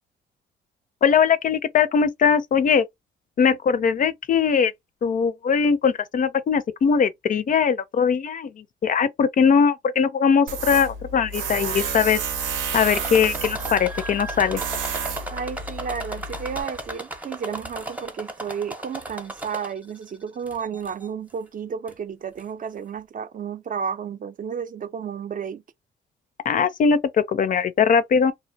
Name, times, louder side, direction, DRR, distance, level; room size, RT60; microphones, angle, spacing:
voice 1, 1.0-2.8 3.4-4.7 5.0-8.5 8.8-12.2 12.7-14.6 26.5-28.3, left 6 dB, 45° left, 0.4 m, -20 dB
Tools, 10.5-16.6, right 5 dB, 85° right, 0.8 m, -31 dB
sound 1, 12.9-20.0 20.5-21.1 21.9-22.0 22.4-22.5, right 1 dB, 10° right, 0.7 m, -35 dB
voice 2, 15.3-25.6, right 7 dB, 45° right, 0.5 m, -32 dB
2.7 x 2.0 x 2.6 m
cardioid pair, 90°, 20 cm